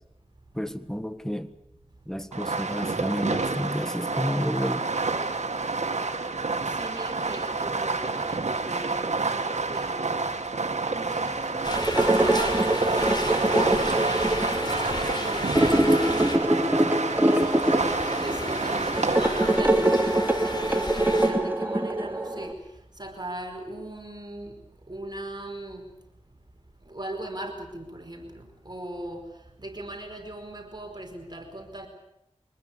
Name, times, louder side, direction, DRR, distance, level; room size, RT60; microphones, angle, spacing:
voice 1, 0.5-1.5 2.1-4.9, equal, 5° left, 1.6 m, -30 dB
Fireworks, 2.3-19.6, right 3 dB, 85° right, 1.8 m, -29 dB
voice 2, 6.7-10.2 10.9-14.0 14.3-17.8 18.2-22.6 23.0-24.6 24.9-25.9 26.9-29.3 29.6-31.9, right 1 dB, 40° right, 5.0 m, -39 dB
sound 1, 11.6-21.3, left 1 dB, 40° left, 5.1 m, -33 dB
sound 2, 11.8-22.5, right 1 dB, 15° right, 2.4 m, -24 dB
24.0 x 20.0 x 8.5 m
wide cardioid pair, 55°, 12 cm